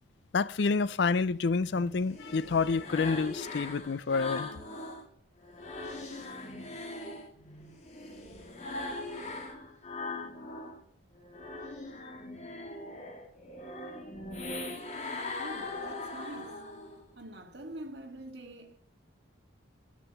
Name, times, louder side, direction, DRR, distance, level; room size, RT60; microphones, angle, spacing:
voice 1, 0.3-4.5, left 4 dB, 60° left, 0.4 m, -28 dB
sound 1, 1.6-5.0 5.4-10.8 11.2-17.0, left 2 dB, 35° left, 2.0 m, -40 dB
voice 2, 15.4-16.6 17.2-18.8, right 1 dB, 55° right, 2.0 m, -45 dB
11.0 x 10.5 x 7.0 m
head